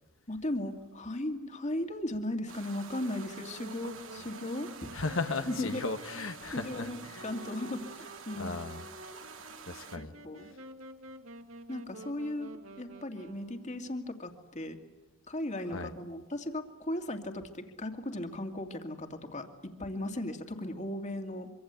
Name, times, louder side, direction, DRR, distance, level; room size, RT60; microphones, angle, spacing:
voice 1, 0.3-4.7 5.5-5.8 6.5-8.5 9.9-10.5 11.7-14.8 15.3-21.5, left 1 dB, 35° left, 6 dB, 2.4 m, -37 dB
Babbling brook in the forest from the bridge, 2.5-10.0, right 5 dB, 65° right, 2.5 m, -48 dB
Wind instrument woodwind instrument, 2.9-13.8, right 1 dB, 85° right, 1.9 m, -49 dB
voice 2, 4.9-7.3 8.4-8.8 9.7-10.1 15.7-15.9, left 3 dB, 70° left, 8 dB, 1.3 m, -36 dB
25.5 x 25.0 x 8.3 m, 1.0 s
head